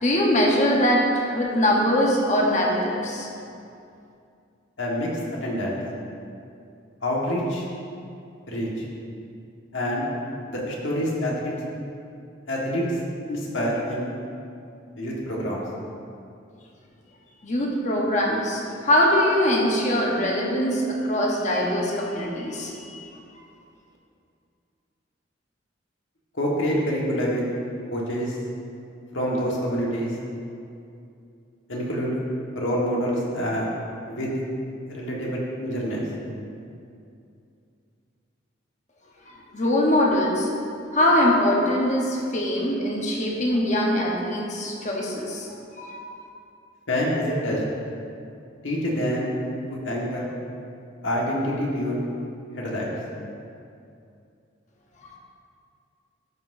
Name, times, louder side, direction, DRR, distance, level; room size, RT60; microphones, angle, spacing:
voice 1, 0.0-3.3 17.4-23.0 39.5-40.5 40.9-46.3, left 1 dB, 35° left, -1 dB, 1.0 m, -22 dB
voice 2, 4.8-5.1 5.4-5.8 7.0-7.6 8.5-8.8 9.7-10.1 10.5-11.5 12.5-12.8 13.3-14.1 15.0-15.6 26.3-27.5 27.9-28.3 29.1-30.1 31.7-32.2 32.5-33.7 34.0-34.3 34.9-36.0 46.9-47.6 48.6-49.3 49.7-50.3 51.0-52.1 52.6-52.9, equal, 75° left, -4 dB, 1.5 m, -26 dB
11.5 x 5.8 x 2.6 m, 2.5 s
head